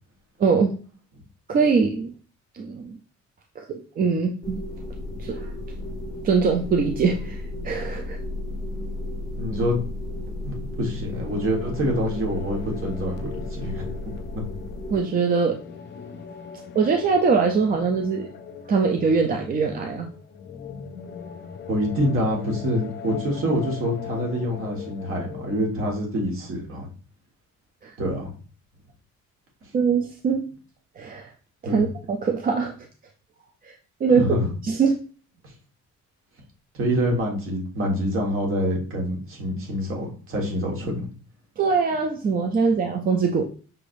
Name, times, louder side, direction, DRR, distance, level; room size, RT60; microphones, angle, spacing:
voice 1, 0.4-0.7 1.5-2.1 2.5-3.0 3.7-4.6 5.2-5.5 6.2-8.2 14.9-15.6 16.7-18.3 18.7-20.1 27.8-27.9 29.7-30.4 31.0-31.3 31.6-32.7 33.6-33.7 34.0-34.3 34.6-35.0 41.6-43.4, right 5 dB, 30° right, 3 dB, 0.4 m, -22 dB
sound 1, 4.4-15.0, left 1 dB, 10° left, 0.7 m, -34 dB
voice 2, 9.4-9.8 10.4-14.4 21.7-26.9 28.0-28.3 31.6-31.8 34.1-34.5 36.7-41.1, equal, 50° right, 0 dB, 1.5 m, -26 dB
sound 2, 11.2-25.7, left 7 dB, 40° left, 0.4 m, -40 dB
5.7 x 3.3 x 2.6 m, 0.39 s
cardioid pair, 170°, 29 cm